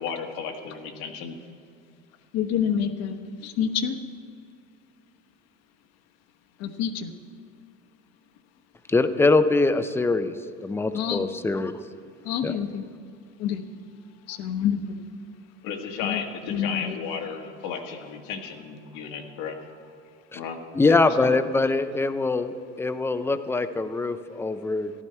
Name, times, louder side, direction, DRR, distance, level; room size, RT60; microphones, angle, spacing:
voice 1, 0.0-1.4 15.6-19.6 20.3-21.4, left 6 dB, 80° left, 2 dB, 1.7 m, -34 dB
voice 2, 2.3-3.2 3.4-4.0 6.6-7.1 10.9-11.3 12.2-12.9 13.4-13.6 14.3-15.0 16.0-16.2 16.5-17.0, left 8 dB, 60° left, 8 dB, 1.0 m, -27 dB
voice 3, 8.9-10.3 10.6-11.7 12.4-12.6 20.3-20.4 20.7-24.9, left 3 dB, 10° left, 11 dB, 0.5 m, -23 dB
14.5 x 12.0 x 4.4 m, 2.4 s
cardioid pair, 130°, 29 cm